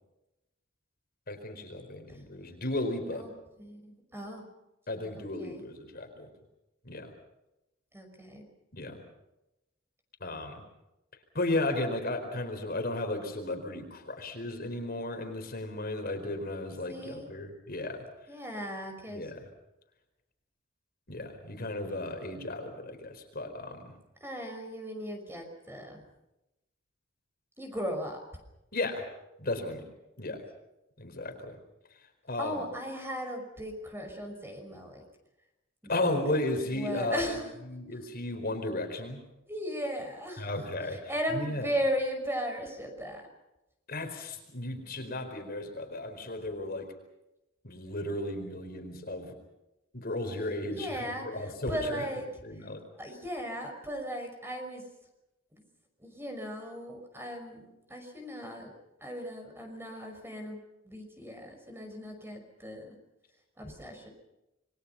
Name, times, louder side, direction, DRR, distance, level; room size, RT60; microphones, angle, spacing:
voice 1, 1.3-3.3 4.9-6.3 6.8-7.1 8.7-9.0 10.2-10.6 11.3-18.0 19.1-19.5 21.1-23.9 28.7-29.0 29.4-29.8 30.2-30.4 31.0-31.6 32.3-32.6 35.9-37.4 37.7-39.2 40.4-41.7 43.9-46.9 47.6-49.3 49.9-52.1 52.4-52.8, left 2 dB, 50° left, 5 dB, 4.5 m, -34 dB
voice 2, 3.6-4.4 5.2-5.6 7.9-8.5 16.9-17.3 18.3-19.2 24.2-26.0 27.6-28.2 32.4-35.0 35.8-36.1 36.7-37.5 39.5-40.5 40.9-43.2 46.6-46.9 50.7-52.3 52.6-52.7 53.0-54.8 55.5-55.6 56.0-58.7 59.0-62.9 63.6-64.1, equal, 10° right, 4 dB, 5.8 m, -37 dB
28.0 x 23.0 x 5.7 m, 0.92 s
head